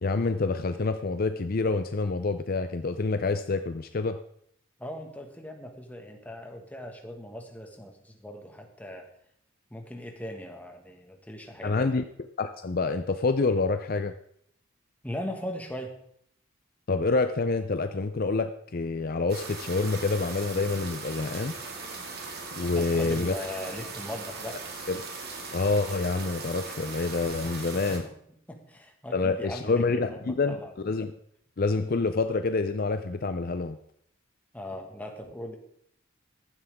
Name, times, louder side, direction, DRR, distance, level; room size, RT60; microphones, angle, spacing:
voice 1, 0.0-4.2 11.6-12.0 12.4-14.1 16.9-21.6 22.6-23.3 24.9-25.0 25.5-28.0 29.1-30.6 30.8-31.1 31.6-33.8, left 3 dB, 45° left, 9 dB, 0.5 m, -27 dB
voice 2, 4.8-9.1 9.7-11.9 15.0-15.9 22.7-24.6 27.4-28.1 28.5-30.7 34.5-35.6, left 1 dB, 5° left, 3 dB, 1.7 m, -39 dB
sound 1, 19.3-28.0, right 4 dB, 50° right, 2.2 m, -39 dB
15.0 x 11.5 x 3.6 m, 0.69 s
head